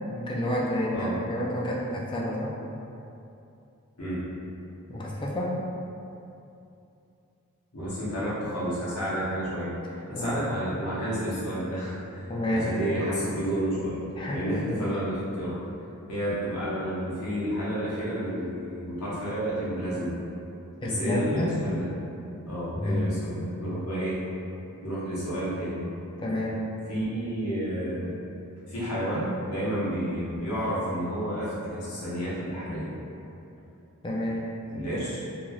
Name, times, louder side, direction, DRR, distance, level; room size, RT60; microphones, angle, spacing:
voice 1, 0.1-2.5 4.9-5.6 10.1-10.4 12.3-12.7 14.2-14.9 20.8-21.5 22.7-23.0 26.2-26.7 34.0-34.5, left 1 dB, 20° left, -4 dB, 0.3 m, -29 dB
voice 2, 7.7-12.2 12.5-14.0 14.3-15.6 16.1-20.1 20.8-21.8 22.4-24.2 24.8-25.8 26.9-28.1 28.7-32.9 34.7-35.3, equal, 85° left, -9 dB, 1.0 m, -30 dB
3.0 x 2.6 x 2.3 m, 2.7 s
head